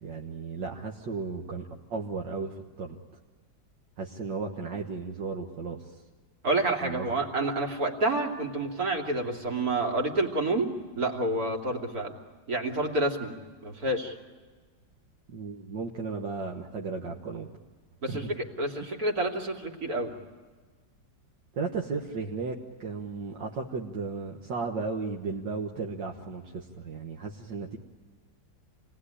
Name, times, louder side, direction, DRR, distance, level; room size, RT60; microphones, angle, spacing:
voice 1, 0.0-3.0 4.0-5.8 6.8-7.2 15.3-17.5 18.1-18.2 18.8-18.9 21.6-27.8, right 4 dB, 75° right, 0 dB, 2.1 m, -35 dB
voice 2, 6.4-10.7 11.0-12.2 12.5-13.3 13.6-14.1 18.0-20.1, right 2 dB, 55° right, 2 dB, 3.2 m, -28 dB
28.5 x 19.5 x 9.9 m, 1.5 s
omnidirectional pair, 1.9 m